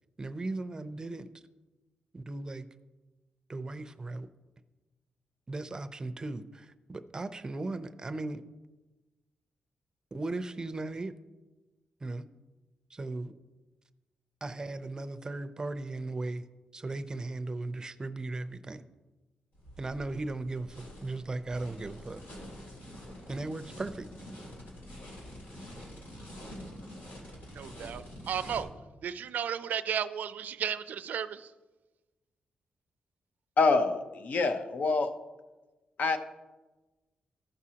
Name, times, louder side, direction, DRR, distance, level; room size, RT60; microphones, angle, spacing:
voice 1, 0.2-1.3 2.1-2.7 3.5-4.3 5.5-8.4 10.1-11.1 12.0-12.2 12.9-13.3 14.4-16.5 16.7-18.8 19.8-22.2 23.3-24.1, right 2 dB, 25° right, 11 dB, 0.5 m, -37 dB
sound 1, 19.5-28.6, equal, 85° left, 3.2 m, -46 dB
sound 2, 20.8-27.2, left 1 dB, 25° left, 3.2 m, -57 dB
voice 2, 27.5-28.7 29.0-31.5, right 8 dB, 75° right, 13 dB, 0.4 m, -34 dB
voice 3, 33.6-35.1 36.0-36.2, left 3 dB, 60° left, 8 dB, 0.7 m, -26 dB
14.5 x 6.1 x 2.9 m, 1.2 s
cardioid pair, 115°, 3 cm